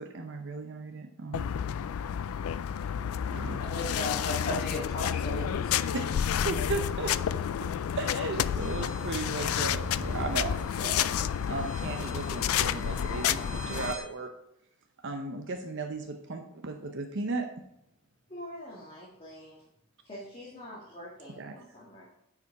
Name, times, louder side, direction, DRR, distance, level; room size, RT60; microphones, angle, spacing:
voice 1, 0.0-1.5 3.3-3.6 5.9-7.1 8.0-11.1 11.5-14.3 15.0-17.5 21.4-21.5, right 3 dB, 55° right, 4 dB, 0.7 m, -36 dB
sound 1, 1.3-13.9, left 9 dB, 75° left, 0.3 m, -30 dB
voice 2, 3.6-5.8, left 2 dB, 45° left, -3 dB, 2.1 m, -35 dB
sound 2, 8.6-14.0, right 1 dB, 35° right, 2.5 m, -43 dB
voice 3, 18.3-19.7 20.0-22.1, equal, 25° left, -6 dB, 2.0 m, -45 dB
9.6 x 5.0 x 4.7 m, 0.82 s
head